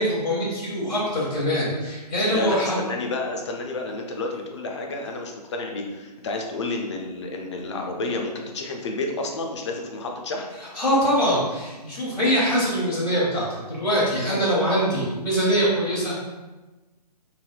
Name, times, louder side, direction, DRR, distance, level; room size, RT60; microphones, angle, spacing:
voice 1, 0.0-2.8 10.7-16.2, equal, 85° left, -7 dB, 1.3 m, -23 dB
voice 2, 2.3-10.5, left 2 dB, 45° left, 1 dB, 0.5 m, -30 dB
3.3 x 2.6 x 2.4 m, 1.2 s
hypercardioid pair, 150°, 21 cm